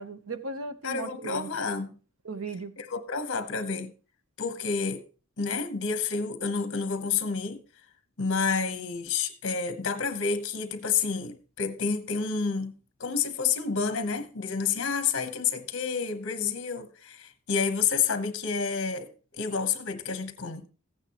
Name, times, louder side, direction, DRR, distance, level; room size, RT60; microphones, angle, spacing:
voice 1, 0.0-1.5 2.2-2.7, right 3 dB, 70° right, 0.9 m, -36 dB
voice 2, 0.8-1.9 2.8-3.9 4.4-5.0 5.4-7.6 8.2-12.7 13.0-20.7, left 5 dB, 55° left, 1.0 m, -29 dB
14.5 x 8.9 x 3.0 m
head